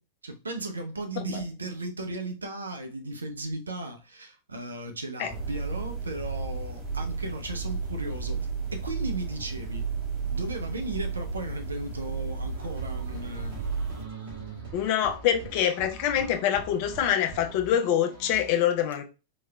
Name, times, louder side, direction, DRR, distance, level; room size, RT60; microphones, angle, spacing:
voice 1, 0.2-9.9 10.3-14.7, right 2 dB, 75° right, 0.7 m, -36 dB
sound 1, 5.3-14.0, right 5 dB, 25° right, 2.2 m, -33 dB
sound 2, 12.5-18.5, right 4 dB, 50° right, 2.2 m, -44 dB
voice 2, 14.7-19.0, left 10 dB, 45° left, 0.6 m, -25 dB
4.8 x 2.9 x 2.3 m
figure-of-eight pair, 90°, 0 cm